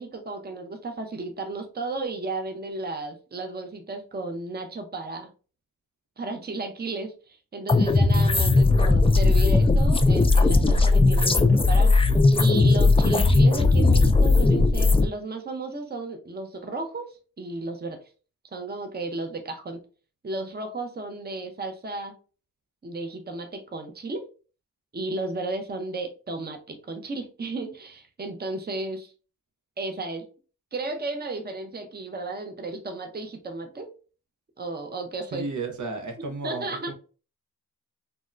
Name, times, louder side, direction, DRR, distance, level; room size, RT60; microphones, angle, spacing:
voice 1, 0.0-5.3 6.2-12.1 12.3-18.0 18.5-19.8 20.2-22.1 22.8-24.2 24.9-29.1 29.8-30.3 30.7-33.9 34.6-35.5 36.4-36.9, right 2 dB, 30° right, 0.6 m, -34 dB
sound 1, 7.7-15.1, left 3 dB, 20° left, 0.3 m, -18 dB
voice 2, 35.3-36.9, right 3 dB, 70° right, 0.7 m, -33 dB
3.4 x 2.1 x 2.5 m
cardioid pair, 50°, 31 cm